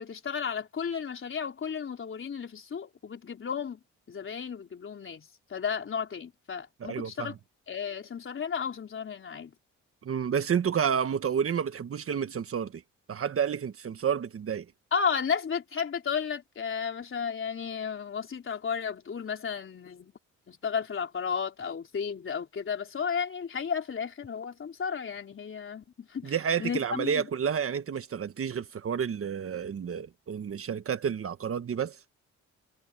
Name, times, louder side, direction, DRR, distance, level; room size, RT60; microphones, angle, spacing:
voice 1, 0.0-3.8 4.1-7.4 7.7-9.5 14.9-20.1 20.5-26.3 26.6-27.3, left 6 dB, 45° left, 3.8 m, -33 dB
voice 2, 6.8-7.3 10.0-12.8 13.1-14.6 26.2-32.0, right 7 dB, 45° right, 1.5 m, -30 dB
cardioid pair, 90°, 30 cm